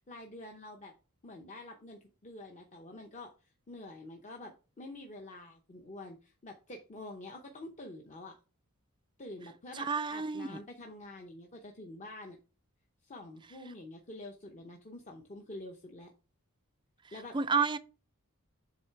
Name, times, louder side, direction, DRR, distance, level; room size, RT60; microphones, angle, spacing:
voice 1, 0.1-0.9 1.2-8.4 9.2-12.4 13.0-16.1 17.1-17.4, left 2 dB, 30° left, 0.7 m, -47 dB
voice 2, 9.7-10.6 17.3-17.8, right 5 dB, 20° right, 0.3 m, -30 dB
7.6 x 3.3 x 4.5 m
head